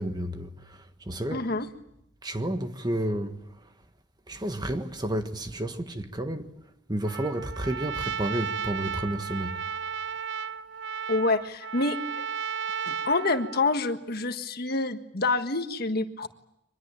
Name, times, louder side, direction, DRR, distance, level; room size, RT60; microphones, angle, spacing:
voice 1, 0.0-1.5 2.2-3.4 4.3-6.5 6.9-9.6, right 1 dB, 25° right, 1.5 m, -31 dB
voice 2, 1.3-1.7 11.1-12.0 12.8-16.3, left 3 dB, 55° left, 1.6 m, -27 dB
Trumpet, 7.0-13.8, right 6 dB, 70° right, 0.9 m, -34 dB
25.0 x 21.5 x 8.9 m
head